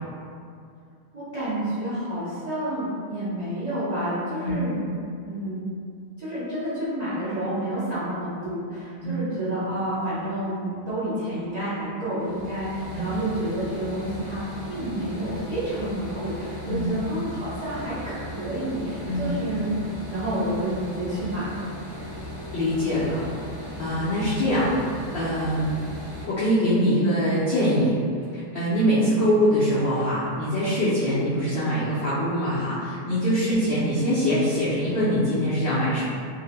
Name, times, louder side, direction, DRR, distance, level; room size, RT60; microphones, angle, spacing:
voice 1, 1.1-4.8 5.2-5.6 6.2-19.7 20.1-21.7 33.5-33.7, right 1 dB, 80° right, -13 dB, 0.3 m, -29 dB
sound 1, 12.2-26.3, equal, 50° left, 0.8 m, -37 dB
voice 2, 22.5-23.2 23.8-25.8 26.2-28.0 28.3-36.0, equal, 70° left, -11 dB, 0.5 m, -23 dB
2.6 x 2.0 x 2.8 m, 2.3 s
omnidirectional pair, 1.5 m